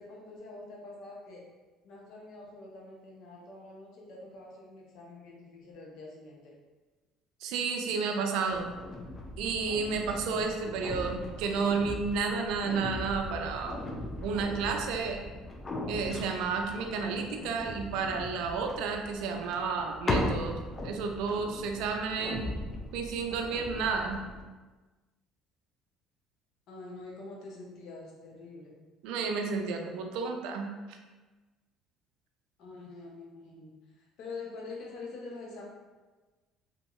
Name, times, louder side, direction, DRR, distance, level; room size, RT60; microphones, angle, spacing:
voice 1, 0.0-1.4 1.8-6.6 26.7-28.7 32.6-35.6, left 3 dB, 65° left, -2 dB, 0.7 m, -45 dB
voice 2, 7.4-8.7 9.4-13.8 14.2-15.3 15.9-20.6 20.8-22.5 22.9-24.2 29.0-30.7, right 5 dB, 75° right, 4 dB, 0.4 m, -31 dB
sound 1, 8.5-24.4, left 1 dB, 35° left, 0.5 m, -38 dB
2.7 x 2.6 x 2.4 m, 1.2 s
supercardioid pair, 80°, 0 cm